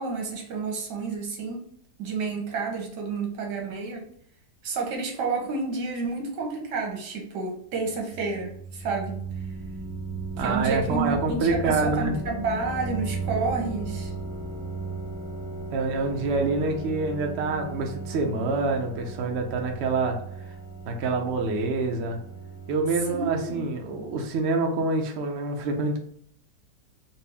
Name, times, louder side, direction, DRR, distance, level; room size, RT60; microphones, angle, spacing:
voice 1, 0.0-1.6 2.0-4.1 4.6-9.2 10.4-14.1 23.1-23.6, right 4 dB, 85° right, 1 dB, 1.5 m, -30 dB
sound 1, 7.7-24.4, right 3 dB, 30° right, 1.3 m, -36 dB
voice 2, 10.4-12.1 15.7-20.2 20.9-22.2 22.7-26.0, right 3 dB, 65° right, 3 dB, 0.6 m, -26 dB
4.1 x 2.1 x 3.4 m, 0.65 s
omnidirectional pair, 1.8 m